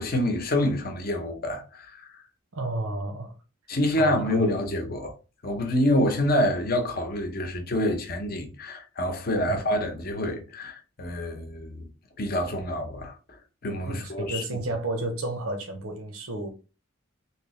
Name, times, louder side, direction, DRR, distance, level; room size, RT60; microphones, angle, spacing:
voice 1, 0.0-2.2 3.7-5.1 5.4-11.9 12.2-14.4, left 1 dB, 45° left, 0.7 m, -27 dB
voice 2, 2.5-3.3 3.9-4.5 9.5-9.6 13.9-16.5, right 2 dB, 85° right, 0.7 m, -32 dB
3.2 x 2.8 x 3.1 m
head